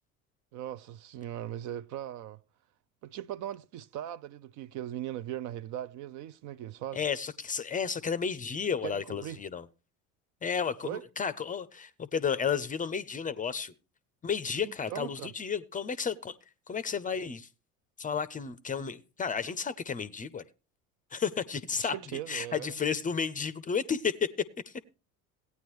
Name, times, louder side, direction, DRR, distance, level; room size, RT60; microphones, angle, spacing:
voice 1, 0.5-2.4 3.0-7.0 8.8-9.4 10.8-11.0 14.6-15.3 21.8-22.8, right 12 dB, 45° right, 0.4 m, -39 dB
voice 2, 6.9-9.7 10.4-13.7 14.2-16.3 16.7-17.5 18.0-20.4 21.1-24.3 24.7-24.8, left 6 dB, 20° left, 0.5 m, -32 dB
16.5 x 9.4 x 3.1 m
hypercardioid pair, 70°, 42 cm